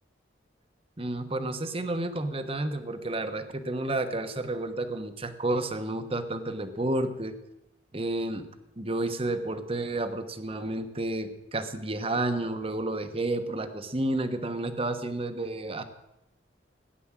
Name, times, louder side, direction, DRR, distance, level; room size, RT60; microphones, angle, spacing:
voice 1, 1.0-7.3 7.9-8.5 8.8-15.8, right 2 dB, 30° right, 9 dB, 1.2 m, -31 dB
17.0 x 10.5 x 7.5 m, 0.92 s
head